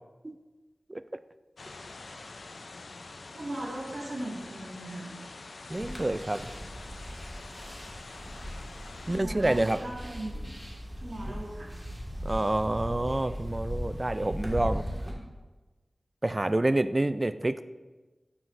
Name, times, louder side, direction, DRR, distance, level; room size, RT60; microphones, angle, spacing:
sound 1, 1.6-9.2, left 3 dB, 75° left, 0.5 m, -46 dB
voice 1, 3.3-5.2 9.0-10.5 11.0-11.7, right 1 dB, 70° right, -3 dB, 2.0 m, -38 dB
sound 2, 5.7-15.1, equal, 10° right, 1.8 m, -38 dB
voice 2, 5.7-6.4 9.1-9.8 12.2-14.9 16.2-17.6, right 1 dB, 30° right, 12 dB, 0.3 m, -28 dB
12.0 x 6.1 x 2.6 m, 1.2 s
wide cardioid pair, 60°, 0 cm